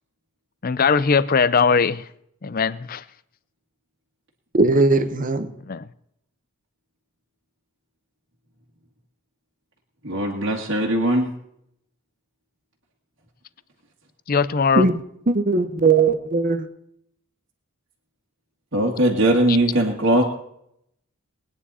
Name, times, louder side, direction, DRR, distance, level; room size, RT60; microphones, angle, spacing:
voice 1, 0.6-2.0 2.4-3.0 5.7-5.8 14.3-14.8 19.5-19.6, left 5 dB, 40° left, 17 dB, 0.5 m, -20 dB
voice 2, 4.5-5.5 14.7-16.7, right 3 dB, 35° right, 10 dB, 0.9 m, -19 dB
voice 3, 10.0-11.3 18.7-20.2, right 1 dB, 55° right, -3 dB, 2.0 m, -20 dB
21.0 x 9.7 x 4.2 m, 0.75 s
head